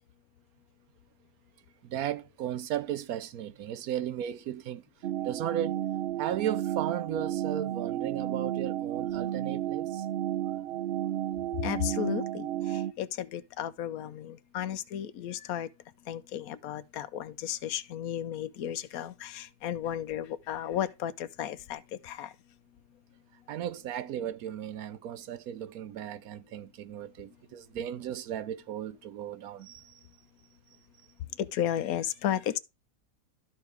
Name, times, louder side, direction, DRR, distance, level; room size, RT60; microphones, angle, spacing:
voice 1, 1.8-4.8 5.2-5.8 6.2-10.1 23.5-30.0, right 10 dB, 80° right, 1.1 m, -35 dB
sound 1, 5.0-12.9, right 12 dB, 65° right, 0.8 m, -32 dB
voice 2, 11.6-15.7 16.1-22.3 31.4-32.6, left 10 dB, 75° left, 1.1 m, -34 dB
12.5 x 4.8 x 3.4 m
omnidirectional pair, 1.5 m